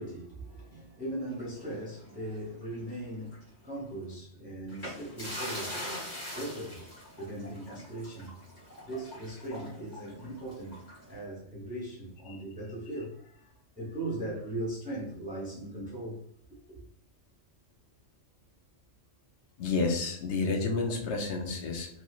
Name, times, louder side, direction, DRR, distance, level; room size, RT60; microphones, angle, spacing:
voice 1, 0.0-5.8 6.3-6.8 7.1-8.4 8.8-16.8, right 1 dB, 10° right, 0.6 m, -39 dB
sound 1, 1.4-2.9 3.3-3.4 4.7-11.2, left 1 dB, 35° left, 1.2 m, -42 dB
voice 2, 19.6-21.9, left 4 dB, 65° left, 0.9 m, -30 dB
3.1 x 2.6 x 2.3 m
omnidirectional pair, 1.3 m